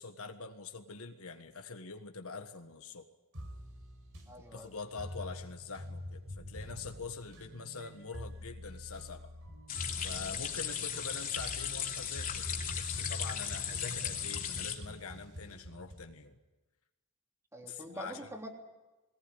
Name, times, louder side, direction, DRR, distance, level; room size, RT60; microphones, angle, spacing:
voice 1, 0.0-3.1 4.4-9.3 10.0-16.4 17.7-18.2, left 4 dB, 65° left, 6 dB, 1.6 m, -45 dB
sound 1, 3.3-16.1, equal, 65° right, 5.1 m, -46 dB
voice 2, 4.3-4.7 17.5-18.5, equal, 15° right, 1 dB, 3.4 m, -45 dB
sound 2, 9.7-14.7, left 8 dB, 40° left, 3.0 m, -37 dB
21.0 x 19.0 x 9.9 m, 1.1 s
head